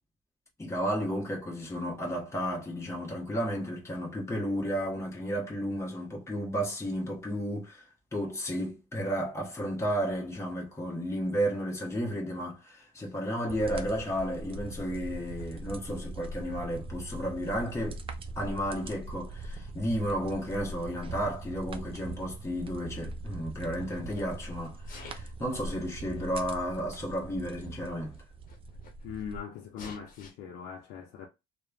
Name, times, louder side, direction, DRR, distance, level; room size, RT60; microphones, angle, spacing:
voice 1, 0.6-18.0 18.4-28.2, equal, 15° left, 1.0 m, -33 dB
sound 1, 13.5-29.4, right 3 dB, 35° right, 0.4 m, -41 dB
Sneeze, 22.3-23.3 23.8-24.3 24.8-25.4 26.3-26.4 27.3-27.4 27.6-27.7 28.1-29.3 29.8-30.3, left 5 dB, 55° left, 0.8 m, -50 dB
voice 2, 29.0-31.3, left 7 dB, 85° left, 0.5 m, -41 dB
3.0 x 2.1 x 2.4 m
cardioid pair, 110°, 17 cm